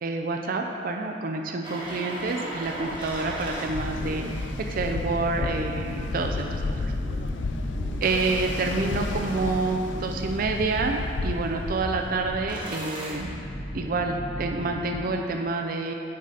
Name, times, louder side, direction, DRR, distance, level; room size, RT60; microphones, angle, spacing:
voice 1, 0.0-6.9 8.0-13.3 13.7-15.9, right 3 dB, 50° right, 3 dB, 0.4 m, -28 dB
sound 1, 1.6-15.0, equal, 25° right, 1.3 m, -35 dB
Ocean, 2.6-12.5, left 3 dB, 75° left, 0.4 m, -33 dB
8.4 x 3.9 x 4.8 m, 2.6 s
head